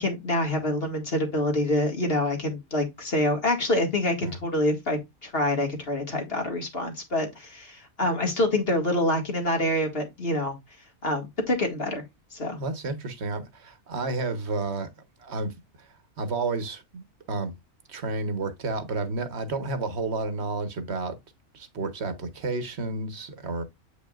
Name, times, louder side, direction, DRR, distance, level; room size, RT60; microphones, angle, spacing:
voice 1, 0.0-10.6 11.0-12.0 12.3-12.6, left 1 dB, 45° left, 2.1 m, -26 dB
voice 2, 12.6-14.9 15.2-17.5 17.9-21.2 21.5-23.6, right 3 dB, 55° right, 1.3 m, -31 dB
8.2 x 5.2 x 2.4 m
omnidirectional pair, 1.4 m